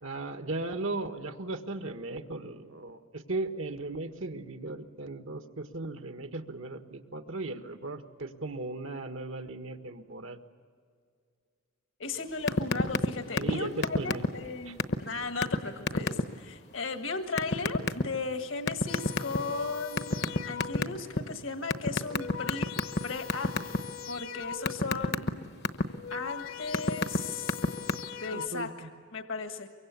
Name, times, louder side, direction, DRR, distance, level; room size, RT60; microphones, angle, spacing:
voice 1, 0.0-10.4 13.4-14.3 14.7-14.8 28.3-28.9, right 2 dB, 70° right, 7 dB, 1.6 m, -37 dB
voice 2, 12.0-22.7 23.0-23.8 24.1-25.4 26.1-27.6 28.1-28.7 29.1-29.7, left 4 dB, 70° left, 6 dB, 1.6 m, -36 dB
sound 1, 12.5-13.1 13.4-13.6 13.8-14.5 14.8-15.0 15.4-15.6 15.9-16.2 17.4-18.0 18.7-19.6 20.0-21.2 21.7-23.0 23.3-23.8 24.2-25.8 26.4-27.2 27.4-27.9, left 2 dB, 55° left, 1.1 m, -26 dB
sound 2, 18.9-21.1 21.9-25.0 25.8-28.5, left 9 dB, 85° left, 1.3 m, -42 dB
24.0 x 24.0 x 8.4 m, 2.1 s
head